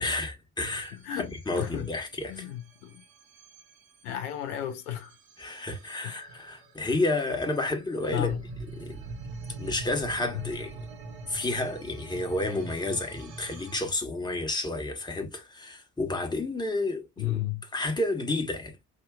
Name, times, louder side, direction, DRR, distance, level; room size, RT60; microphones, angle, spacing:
voice 1, 0.0-2.5 5.4-8.3 8.8-9.0 9.6-10.8 11.3-17.4 17.7-18.8, left 2 dB, 10° left, 1.1 m, -31 dB
sound 1, 0.7-13.8, right 3 dB, 50° right, 0.9 m, -44 dB
voice 2, 0.9-1.9 2.3-3.0 4.0-5.1 6.0-6.2 8.1-8.4 10.3-10.5 17.2-17.6, left 12 dB, 70° left, 0.7 m, -33 dB
4.7 x 2.7 x 2.4 m
figure-of-eight pair, 45°, 47 cm